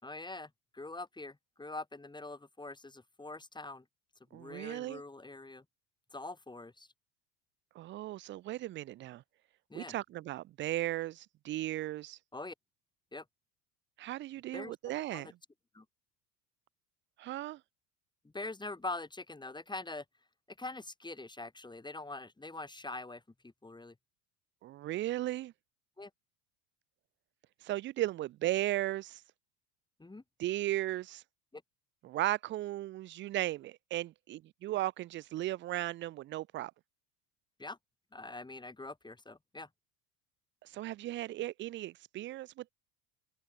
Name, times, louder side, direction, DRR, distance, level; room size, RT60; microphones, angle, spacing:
voice 1, 0.0-3.8 4.3-5.6 6.1-6.9 9.7-9.9 12.3-12.5 13.1-13.2 14.5-14.8 15.1-15.3 15.7-15.8 18.3-20.0 20.6-23.9 26.0-26.1 30.0-30.2 31.5-31.6 37.6-37.8 38.1-39.7, left 2 dB, 10° left, 3.0 m, -44 dB
voice 2, 4.3-5.0 7.7-9.2 9.7-12.2 14.0-15.3 17.2-17.6 24.6-25.5 27.6-29.2 30.4-31.2 32.0-36.7 40.6-42.7, right 15 dB, 25° right, 0.5 m, -36 dB
figure-of-eight pair, 75°, 46 cm